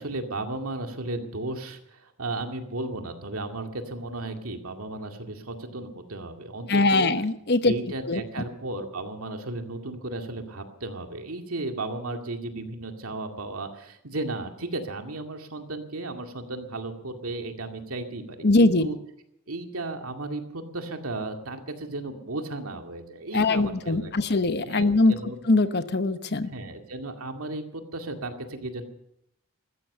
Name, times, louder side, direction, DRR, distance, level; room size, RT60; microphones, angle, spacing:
voice 1, 0.0-7.1 7.6-19.0 19.5-25.4 26.5-28.8, right 2 dB, 90° right, 5 dB, 2.2 m, -35 dB
voice 2, 6.7-7.7 8.1-8.2 18.4-18.9 23.3-25.2 25.5-26.5, left 2 dB, 50° left, 11 dB, 1.0 m, -21 dB
15.0 x 13.5 x 6.8 m, 0.78 s
head